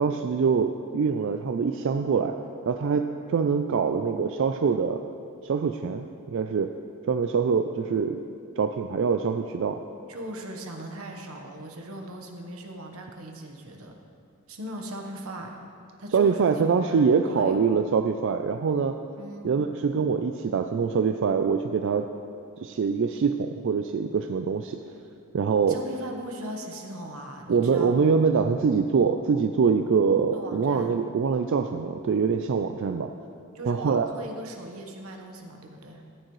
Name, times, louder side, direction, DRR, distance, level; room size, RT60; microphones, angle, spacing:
voice 1, 0.0-2.3 2.7-3.0 3.3-5.0 5.4-6.7 7.1-8.2 8.6-9.8 16.1-18.9 19.4-22.1 22.6-24.8 25.3-25.8 27.5-33.1 33.7-34.1, right 5 dB, 60° right, 6 dB, 0.4 m, -24 dB
voice 2, 10.1-13.9 14.5-15.5 16.0-16.5 16.9-17.6 19.2-19.5 25.7-27.9 30.3-31.0 33.5-36.0, right 1 dB, 90° right, 2 dB, 1.2 m, -39 dB
14.0 x 9.0 x 3.2 m, 2.4 s
head